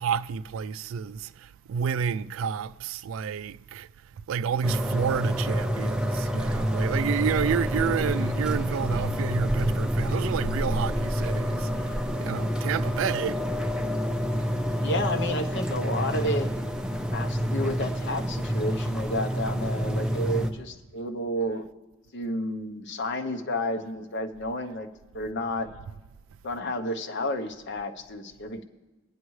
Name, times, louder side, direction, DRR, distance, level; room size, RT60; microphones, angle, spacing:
voice 1, 0.0-3.9 4.3-13.4, right 7 dB, 70° right, 0.3 m, -30 dB
sound 1, 4.6-20.5, equal, 5° right, 0.6 m, -28 dB
voice 2, 14.8-16.5 17.1-21.7 22.1-24.9 25.1-25.7 26.4-28.6, left 1 dB, 60° left, 0.9 m, -31 dB
21.5 x 9.7 x 3.2 m
head